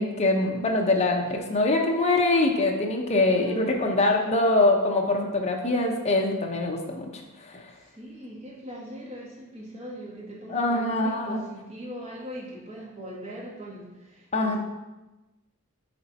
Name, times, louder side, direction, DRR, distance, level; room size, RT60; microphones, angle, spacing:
voice 1, 0.0-7.1 7.4-7.7 10.5-11.4 14.3-14.6, left 2 dB, 30° left, 1 dB, 0.8 m, -24 dB
voice 2, 3.2-4.2 7.8-14.6, equal, 30° right, -4 dB, 1.8 m, -40 dB
8.6 x 3.8 x 4.2 m, 1.1 s
head